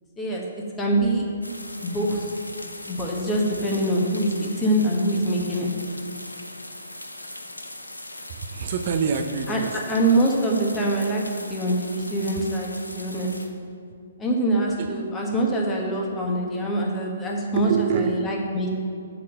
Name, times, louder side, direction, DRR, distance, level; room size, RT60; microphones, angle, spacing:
voice 1, 0.2-1.2 1.8-2.3 2.9-5.7 9.5-9.6 9.9-13.3 14.2-18.8, right 1 dB, 15° left, -1 dB, 1.3 m, -24 dB
sound 1, 1.4-13.5, left 1 dB, 90° left, 0.7 m, -39 dB
voice 2, 8.3-9.9 14.8-14.9 17.6-18.2, right 6 dB, 40° right, 5 dB, 0.5 m, -26 dB
7.3 x 4.3 x 6.5 m, 2.4 s
figure-of-eight pair, 130°, 0 cm